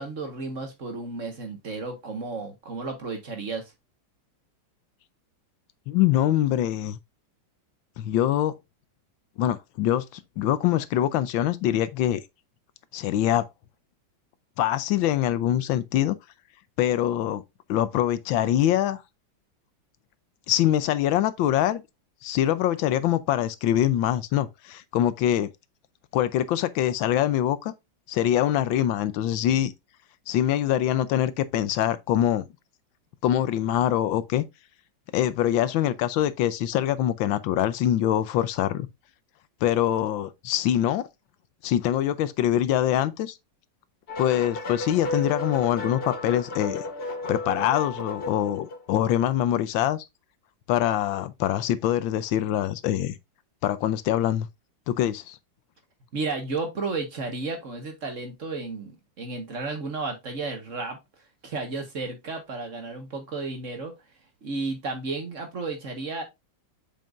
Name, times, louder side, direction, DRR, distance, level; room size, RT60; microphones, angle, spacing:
voice 1, 0.0-3.7 56.1-61.0 61.4-63.9 64.4-66.2, right 3 dB, 45° right, 1.6 m, -33 dB
voice 2, 5.9-7.0 8.0-8.5 9.4-12.2 12.9-13.4 14.6-16.2 16.8-17.4 17.7-19.0 20.5-21.8 22.2-25.5 26.1-27.7 28.1-29.7 30.3-32.5 33.2-34.4 35.1-38.9 39.6-41.1 41.6-43.4 44.2-46.8 47.3-50.0 50.7-53.2 53.6-54.5 54.9-55.4, left 11 dB, 90° left, 1.4 m, -24 dB
sound 1, 44.1-49.1, left 2 dB, 45° left, 0.8 m, -33 dB
7.7 x 5.3 x 2.5 m
omnidirectional pair, 2.1 m